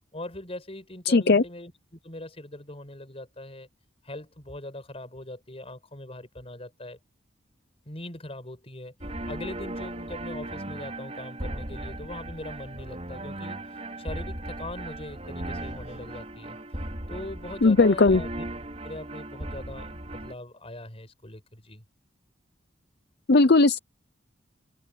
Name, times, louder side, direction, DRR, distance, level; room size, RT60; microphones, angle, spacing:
voice 1, 0.1-3.7 4.0-7.0 7.9-8.9 9.3-16.6 17.1-18.5 18.8-21.8, left 1 dB, 30° left, 5.7 m, -41 dB
voice 2, 1.1-1.4 17.6-18.2 23.3-23.8, left 3 dB, 60° left, 0.7 m, -18 dB
sound 1, 9.0-20.3, right 1 dB, 35° right, 5.4 m, -37 dB
head